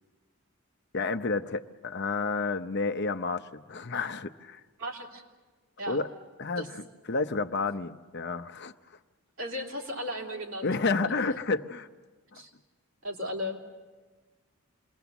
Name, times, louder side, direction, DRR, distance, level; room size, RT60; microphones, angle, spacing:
voice 1, 0.9-4.6 5.9-6.1 6.4-6.8 7.1-9.0 10.6-11.9 12.3-12.4, left 4 dB, 50° left, 9 dB, 0.7 m, -30 dB
voice 2, 4.8-5.2 5.8-6.0 6.6-6.7 9.4-10.9 12.3-12.5 13.0-13.6, left 1 dB, 65° right, 0 dB, 3.3 m, -35 dB
28.0 x 21.5 x 7.1 m, 1.3 s
head